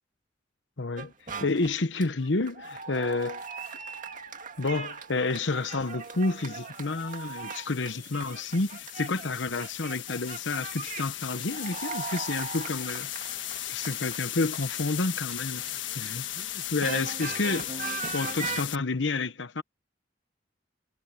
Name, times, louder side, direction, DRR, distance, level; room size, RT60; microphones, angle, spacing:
voice 1, 0.8-1.1 1.4-3.4 4.6-13.1 13.7-17.7 18.1-19.6, left 3 dB, 75° left, 1.0 m, -30 dB
sound 1, 1.0-9.3 9.6-16.1 16.4-18.6, right 5 dB, 45° right, 2.0 m, -39 dB
sound 2, 3.4-3.7 5.9-18.8, left 12 dB, 90° left, 1.4 m, -37 dB
head